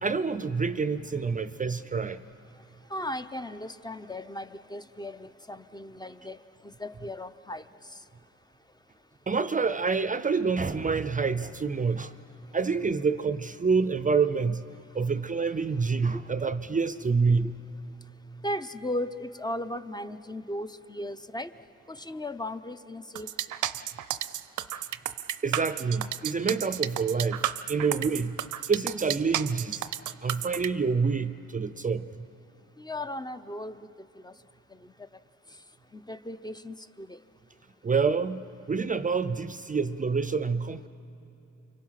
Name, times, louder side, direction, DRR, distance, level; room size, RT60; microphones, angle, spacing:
voice 1, 0.0-2.2 9.3-12.1 12.5-14.6 14.9-17.5 25.4-28.4 28.7-29.9 30.2-32.3 37.8-40.9, right 5 dB, 25° right, 13 dB, 0.5 m, -27 dB
voice 2, 2.9-6.4 6.8-7.6 16.0-16.2 18.4-21.5 21.9-23.3 32.8-33.8 34.2-34.3 35.9-37.2, left 1 dB, 15° left, 11 dB, 0.7 m, -36 dB
sound 1, 23.2-30.7, right 12 dB, 90° right, 0.7 m, -32 dB
30.0 x 24.5 x 5.8 m, 3.0 s
cardioid pair, 105°, 30 cm